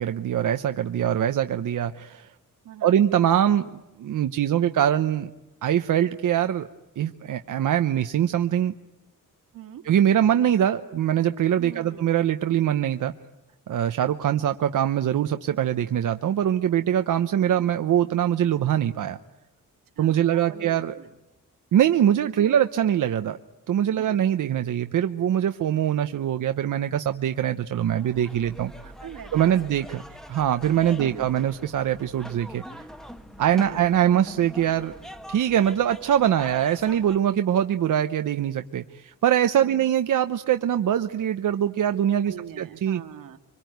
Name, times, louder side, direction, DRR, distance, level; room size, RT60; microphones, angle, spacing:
voice 1, 0.0-2.3 2.8-5.3 5.6-6.7 7.0-8.7 9.8-13.1 13.7-19.2 20.0-20.9 21.7-23.4 23.7-28.9 29.3-30.0 30.3-32.6 33.4-34.9 35.3-43.0, right 10 dB, 65° right, 8 dB, 0.9 m, -23 dB
voice 2, 2.6-3.0 9.5-9.8 11.6-12.2 14.0-14.4 20.0-21.2 22.4-22.6 24.0-24.5 29.0-29.7 30.9-31.3 33.7-33.8 39.6-40.0 42.2-43.4, right 9 dB, 85° right, 6 dB, 2.1 m, -43 dB
sound 1, 27.8-37.2, equal, ahead, 1.2 m, -42 dB
25.5 x 25.0 x 9.3 m, 1.0 s
wide cardioid pair, 180°, 33 cm